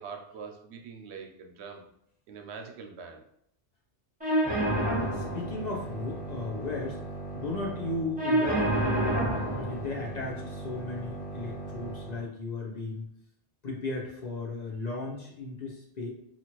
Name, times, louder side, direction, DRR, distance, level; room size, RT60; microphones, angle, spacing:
voice 1, 0.0-1.8 2.3-3.2, right 5 dB, 80° right, 3 dB, 0.8 m, -43 dB
sound 1, 4.2-12.2, right 1 dB, 10° right, 0.8 m, -31 dB
voice 2, 5.1-7.0 7.3-9.2 9.5-13.0 13.6-16.1, left 3 dB, 45° left, -2 dB, 0.6 m, -35 dB
2.8 x 2.5 x 2.9 m, 0.71 s
omnidirectional pair, 1.1 m